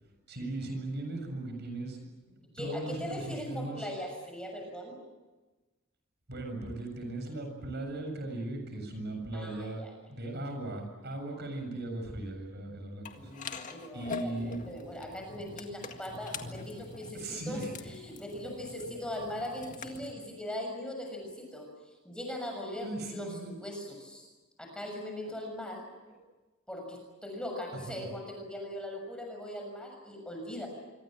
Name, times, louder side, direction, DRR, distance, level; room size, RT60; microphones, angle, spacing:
voice 1, 0.3-2.0 2.3-3.9 6.3-13.3 13.9-14.6 17.1-17.7 18.7-18.9 20.2-20.3 22.8-23.5 27.9-28.1, right 2 dB, 50° right, 4 dB, 6.9 m, -38 dB
voice 2, 2.5-5.0 9.3-9.9 13.1-21.7 22.0-24.3 24.6-25.8 26.7-30.7, left 1 dB, 5° left, 2 dB, 6.7 m, -40 dB
sound 1, 13.1-20.1, left 4 dB, 35° left, 1.9 m, -44 dB
26.5 x 25.0 x 7.7 m, 1.2 s
head